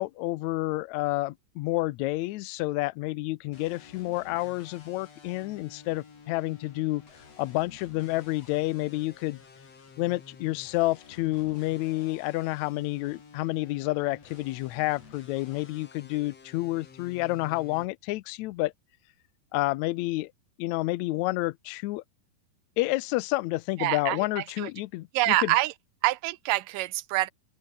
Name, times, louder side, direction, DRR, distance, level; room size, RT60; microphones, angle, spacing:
voice 1, 0.0-7.0 7.4-9.4 10.0-18.7 19.5-20.3 20.6-22.0 22.8-25.5, left 19 dB, 80° left, 1.7 m, -29 dB
sound 1, 3.5-17.9, left 5 dB, 50° left, 4.8 m, -51 dB
voice 2, 23.8-24.2 24.6-24.7 25.1-25.7 26.0-27.3, right 17 dB, 90° right, 2.4 m, -25 dB
open air
omnidirectional pair, 3.8 m